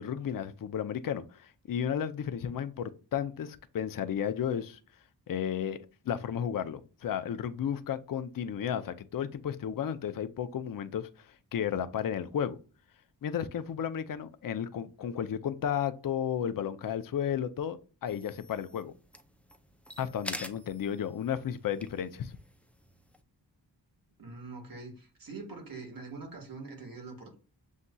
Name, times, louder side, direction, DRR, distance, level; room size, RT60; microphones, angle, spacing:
voice 1, 0.0-4.8 5.3-11.1 11.5-12.6 13.2-18.9 20.0-22.4, left 9 dB, 55° left, 0.5 m, -33 dB
sound 1, 18.1-23.2, left 1 dB, 5° left, 0.4 m, -46 dB
voice 2, 24.2-27.4, right 3 dB, 55° right, 1.6 m, -44 dB
7.1 x 2.7 x 2.2 m
wide cardioid pair, 85°, 42 cm